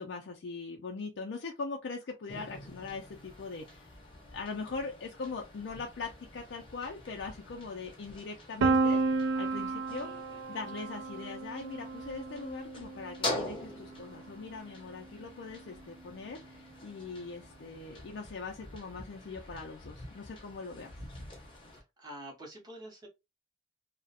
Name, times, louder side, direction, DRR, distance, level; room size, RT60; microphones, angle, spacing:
voice 1, 0.0-3.9 4.3-10.1 10.5-20.9, left 4 dB, 70° left, 0.4 m, -41 dB
sound 1, 2.3-21.8, left 2 dB, 25° left, 0.6 m, -45 dB
Piano, 8.6-14.4, right 3 dB, 85° right, 0.3 m, -32 dB
voice 2, 10.0-10.4 21.7-23.1, right 1 dB, 20° right, 0.7 m, -48 dB
2.4 x 2.0 x 2.7 m
head